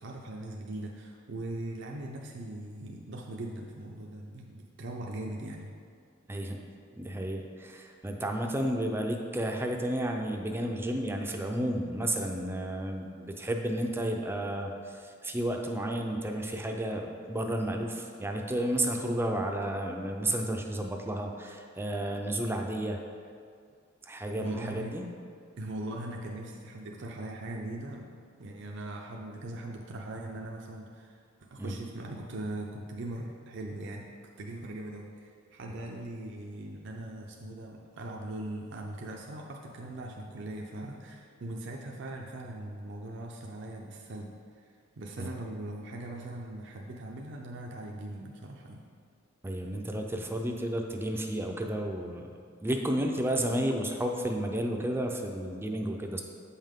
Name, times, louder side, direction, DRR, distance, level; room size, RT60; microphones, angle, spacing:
voice 1, 0.0-5.7 24.4-25.0 25.6-28.1 28.4-34.1 34.4-44.6 45.0-48.8, right 1 dB, 60° right, 0 dB, 0.6 m, -40 dB
voice 2, 6.9-23.0 24.0-25.1 31.6-31.8 45.2-45.3 49.4-52.3 52.6-56.2, right 1 dB, 10° right, 2 dB, 0.5 m, -32 dB
8.0 x 5.5 x 3.6 m, 2.2 s
head